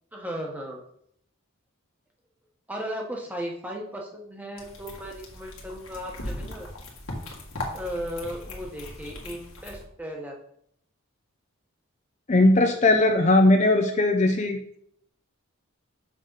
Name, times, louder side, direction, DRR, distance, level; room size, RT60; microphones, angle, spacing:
voice 1, 0.1-0.8 2.7-6.7 7.7-10.3, equal, 10° right, 0 dB, 1.2 m, -36 dB
sound 1, 4.6-9.8, left 1 dB, 75° left, 1.9 m, -38 dB
voice 2, 12.3-14.8, left 2 dB, 35° left, 4 dB, 0.6 m, -19 dB
6.5 x 6.3 x 4.0 m, 0.69 s
head